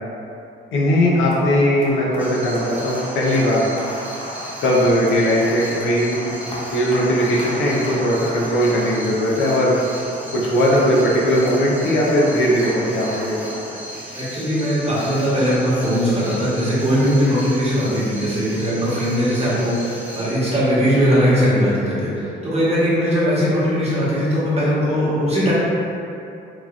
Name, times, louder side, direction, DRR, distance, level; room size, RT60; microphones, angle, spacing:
voice 1, 0.7-3.6 4.6-6.2 6.7-9.8 10.3-13.8, equal, 80° left, -4 dB, 0.6 m, -19 dB
sound 1, 1.3-14.3, equal, 25° left, 0.7 m, -36 dB
sound 2, 2.2-20.4, right 1 dB, 10° right, 0.6 m, -37 dB
voice 2, 14.1-25.5, equal, 30° right, -9 dB, 1.0 m, -19 dB
3.0 x 2.4 x 2.4 m, 2.7 s
cardioid pair, 90°, 20 cm